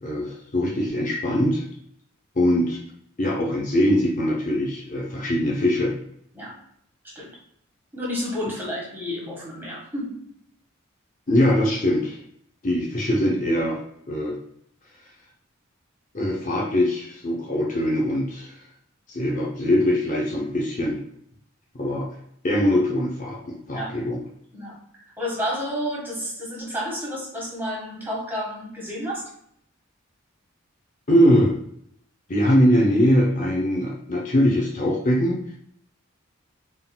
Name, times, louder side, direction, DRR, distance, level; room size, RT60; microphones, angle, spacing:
voice 1, 0.0-1.6 2.4-2.8 3.2-5.9 11.3-12.2 12.6-13.8 14.1-14.4 16.1-18.5 19.1-21.0 21.7-22.1 22.4-24.2 31.1-31.6 32.3-35.4, equal, 40° left, -3 dB, 0.7 m, -22 dB
voice 2, 7.9-10.2 23.7-23.9 24.5-24.7 25.2-29.3, equal, 10° right, -5 dB, 1.5 m, -30 dB
3.9 x 3.8 x 2.2 m, 0.69 s
head